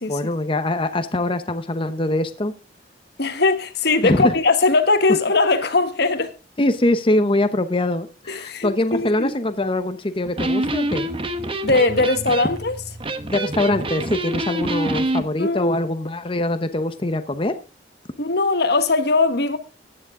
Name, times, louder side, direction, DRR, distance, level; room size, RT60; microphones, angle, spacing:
voice 1, 0.1-2.5 4.0-4.3 6.6-11.1 13.2-17.5, left 1 dB, 30° left, 0.9 m, -23 dB
voice 2, 3.2-6.3 8.3-9.3 11.6-12.7 15.4-15.8 18.2-19.6, left 3 dB, 60° left, 1.4 m, -20 dB
Electric guitar, 10.2-15.2, right 1 dB, 30° right, 1.1 m, -26 dB
14.5 x 10.0 x 3.7 m
head